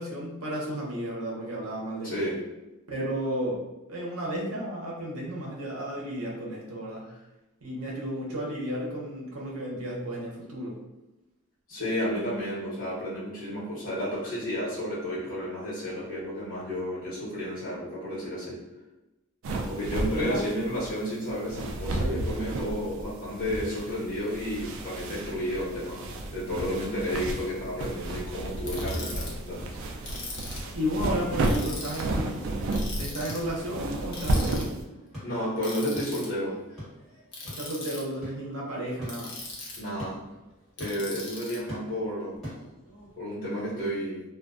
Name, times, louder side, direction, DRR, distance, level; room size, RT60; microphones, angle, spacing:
voice 1, 0.0-2.2 2.9-3.6 3.9-7.1 7.6-10.8 20.1-20.4 30.7-32.4 33.0-34.7 37.4-39.3, equal, 90° right, -3 dB, 0.7 m, -33 dB
voice 2, 2.0-2.4 11.7-18.6 19.7-29.6 35.2-36.6 39.8-40.2 40.8-42.4 43.2-44.2, equal, 40° left, -10 dB, 1.1 m, -32 dB
sound 1, 19.4-34.8, right 2 dB, 70° right, 0.3 m, -32 dB
Ratchet pawl, 28.7-29.3 30.1-30.7 31.4-32.0 32.7-33.4 34.1-34.6 35.6-36.3 37.3-38.0 39.1-39.9 40.8-41.6, left 3 dB, 55° left, 0.7 m, -39 dB
sound 2, 33.0-43.2, equal, ahead, 1.4 m, -46 dB
2.4 x 2.2 x 2.4 m, 1.0 s
head